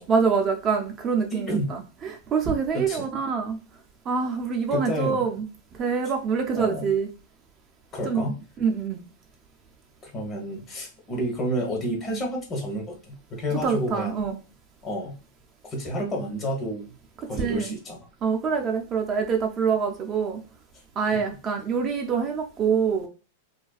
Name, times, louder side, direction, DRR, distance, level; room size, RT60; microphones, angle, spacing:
voice 1, 0.0-3.6 4.1-5.5 5.8-7.1 8.0-8.2 8.6-9.0 13.6-14.4 17.4-17.7 18.2-20.4 21.0-23.1, right 6 dB, 30° right, 3 dB, 0.4 m, -25 dB
voice 2, 1.3-1.7 2.7-3.1 4.7-5.2 6.5-6.9 7.9-8.4 10.0-14.2 14.8-15.2 15.7-16.9 17.3-18.1 21.1-21.3, equal, 25° left, 1 dB, 0.9 m, -30 dB
2.4 x 2.2 x 2.3 m, 0.33 s
hypercardioid pair, 120°, 0 cm